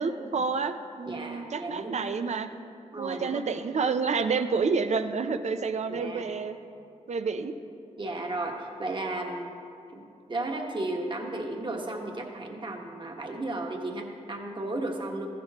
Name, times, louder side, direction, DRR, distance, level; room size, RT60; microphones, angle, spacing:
voice 1, 0.0-2.5 3.0-6.6 7.1-7.5, right 5 dB, 65° right, 9 dB, 0.6 m, -29 dB
voice 2, 1.1-2.0 2.9-3.4 5.9-6.2 8.0-9.6 9.9-10.0 10.3-15.3, right 2 dB, 40° right, 1 dB, 1.4 m, -34 dB
14.0 x 11.0 x 3.0 m, 2.5 s
cardioid pair, 60°, 13 cm